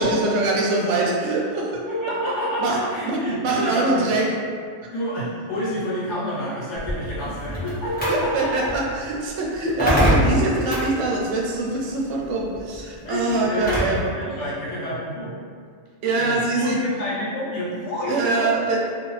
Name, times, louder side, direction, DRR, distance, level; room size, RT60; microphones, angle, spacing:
voice 1, 0.0-1.7 2.6-2.8 3.0-4.3 8.1-14.0 16.0-16.8 18.1-18.8, right 2 dB, 85° right, -2 dB, 0.9 m, -23 dB
voice 2, 1.9-4.1 4.9-8.5 13.0-15.4 16.2-18.5, equal, 75° left, -8 dB, 1.2 m, -28 dB
sound 1, 6.7-14.1, equal, 10° left, 0.7 m, -26 dB
2.4 x 2.3 x 3.0 m, 2.1 s
omnidirectional pair, 1.2 m